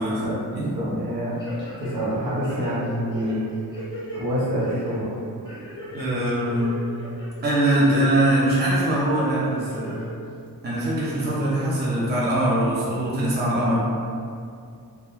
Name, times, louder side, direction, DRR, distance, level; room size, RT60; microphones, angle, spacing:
voice 1, 0.0-0.4 0.7-1.4 1.8-3.4 4.1-5.2, equal, 75° right, -7 dB, 0.8 m, -27 dB
sound 1, 1.4-2.1 2.4-4.2 4.6-5.0 5.4-6.0 6.4-7.3 7.7-8.3 8.8-8.9 9.5-10.1 10.5-10.6, right 1 dB, 10° left, 0.8 m, -38 dB
voice 2, 5.9-6.7 7.4-10.0 10.6-13.8, right 1 dB, 30° right, -7 dB, 0.4 m, -22 dB
2.3 x 2.1 x 3.0 m, 2.4 s
wide cardioid pair, 170°, 37 cm